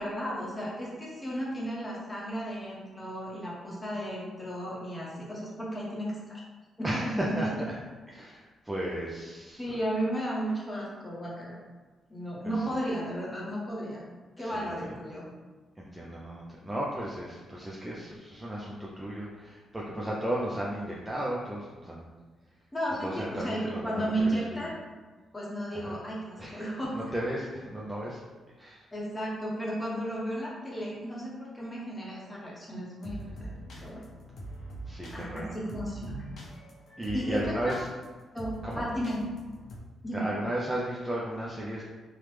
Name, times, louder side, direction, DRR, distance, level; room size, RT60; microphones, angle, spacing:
voice 1, 0.0-6.4 6.8-7.6 9.6-11.6 12.1-14.0 14.4-15.3 22.7-24.7 25.3-26.9 28.9-34.0 35.1-36.3 37.1-37.7 38.3-39.2 40.0-40.2, right 1 dB, 15° left, -5 dB, 0.7 m, -34 dB
voice 2, 6.8-7.7 8.1-9.8 14.4-14.9 15.8-22.1 23.0-24.7 25.7-26.0 26.4-28.2 28.6-28.9 34.9-35.5 37.0-37.9 38.6-38.9 40.1-41.8, right 1 dB, 10° right, -5 dB, 0.3 m, -35 dB
sound 1, 33.0-39.8, right 1 dB, 65° left, 0.6 m, -43 dB
3.2 x 2.0 x 3.1 m, 1.3 s
cardioid pair, 145°, 0 cm